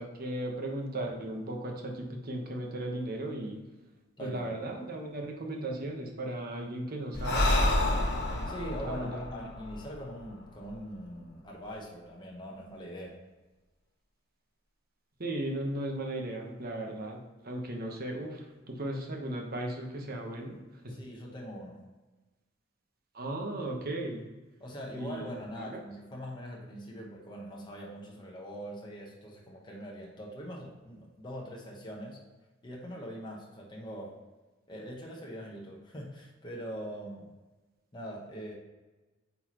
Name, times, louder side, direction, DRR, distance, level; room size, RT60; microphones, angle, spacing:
voice 1, 0.0-3.6 4.2-7.6 8.8-9.2 15.2-17.2 17.4-20.6 20.8-20.9 23.1-24.3 25.0-25.2 25.6-25.7, right 1 dB, 50° right, 1 dB, 1.1 m, -36 dB
voice 2, 4.2-4.6 8.4-13.2 20.9-21.8 24.6-32.2 32.6-34.2 34.7-37.3 37.9-38.5, equal, 25° left, -2 dB, 1.1 m, -42 dB
Breathing, 7.1-10.7, left 1 dB, 55° left, 1.2 m, -29 dB
8.6 x 4.3 x 3.0 m, 1.2 s
head